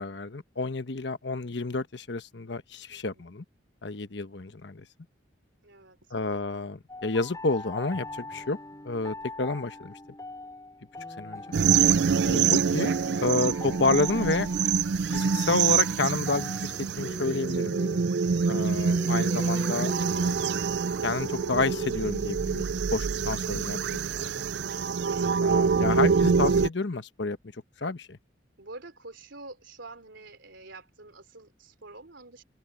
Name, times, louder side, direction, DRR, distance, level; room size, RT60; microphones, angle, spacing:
voice 1, 0.0-3.4 3.8-4.9 6.1-8.6 8.8-9.9 11.2-11.4 12.2-12.9 13.2-14.5 15.1-17.8 18.5-19.9 21.0-24.4 25.4-27.4 27.8-28.2, left 3 dB, 70° left, 1.1 m, -30 dB
voice 2, 2.9-3.2 5.6-6.1 17.9-18.5 25.6-25.9 28.6-32.4, right 2 dB, 85° right, 3.1 m, -47 dB
sound 1, 6.9-21.9, left 1 dB, 20° left, 7.5 m, -42 dB
sound 2, 11.5-26.7, right 6 dB, 65° right, 0.4 m, -25 dB
open air
head